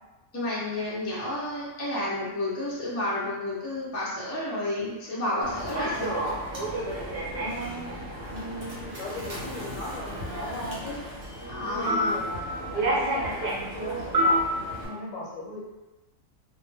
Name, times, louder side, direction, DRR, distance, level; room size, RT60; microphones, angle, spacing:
voice 1, 0.3-6.1 11.5-12.2, left 1 dB, 20° left, -8 dB, 0.4 m, -31 dB
Human voice / Subway metro underground, 5.4-14.9, right 1 dB, 50° right, 0.7 m, -30 dB
voice 2, 7.4-7.9 8.3-11.0 11.7-15.6, left 1 dB, 70° left, -5 dB, 1.1 m, -37 dB
2.4 x 2.1 x 3.3 m, 1.1 s
omnidirectional pair, 1.4 m